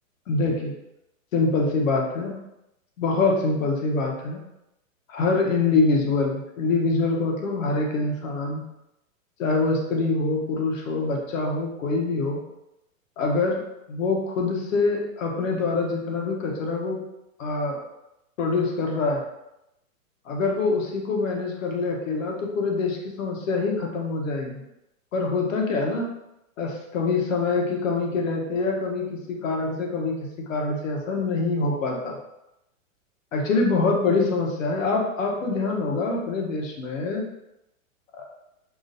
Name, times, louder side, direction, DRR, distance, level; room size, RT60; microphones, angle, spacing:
voice 1, 0.3-0.7 1.3-2.4 3.0-4.4 5.1-8.6 9.4-12.4 13.2-13.6 13.9-17.0 17.4-17.8 18.4-19.2 20.3-24.6 25.1-26.1 26.6-32.2 33.3-37.3, left 3 dB, 65° left, 0 dB, 1.2 m, -25 dB
6.0 x 2.5 x 2.7 m, 0.87 s
hypercardioid pair, 155°, 42 cm